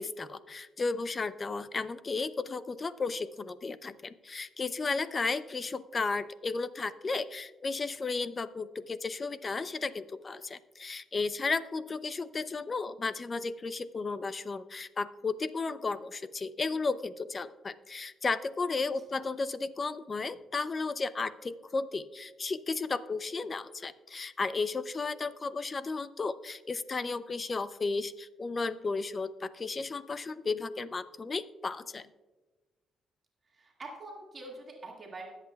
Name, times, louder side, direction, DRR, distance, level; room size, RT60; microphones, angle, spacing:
voice 1, 0.0-32.1, left 4 dB, 35° left, 14 dB, 0.6 m, -34 dB
voice 2, 33.6-35.3, right 2 dB, 35° right, -1 dB, 2.0 m, -45 dB
21.0 x 8.2 x 2.3 m, 1.2 s
cardioid pair, 90°, 0 cm